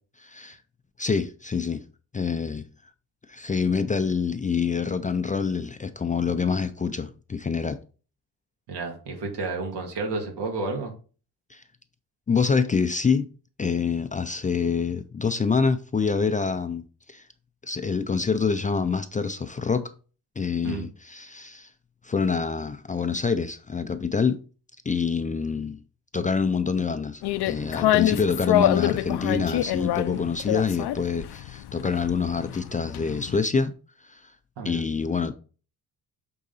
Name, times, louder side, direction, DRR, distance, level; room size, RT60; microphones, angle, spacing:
voice 1, 0.2-0.6 1.0-1.8 2.1-2.6 3.3-7.8 11.5-11.6 12.3-13.3 13.6-16.8 17.1-17.2 17.6-19.9 20.4-21.7 22.0-24.4 24.9-25.8 26.1-33.7 34.0-34.3 34.6-35.3, left 5 dB, 20° left, 0.3 m, -26 dB
voice 2, 8.7-10.9 20.6-20.9 34.6-34.8, right 3 dB, 85° right, 2.3 m, -31 dB
sound 1, 27.2-33.4, left 13 dB, 75° left, 0.5 m, -26 dB
8.3 x 3.9 x 3.9 m
cardioid pair, 145°, 40 cm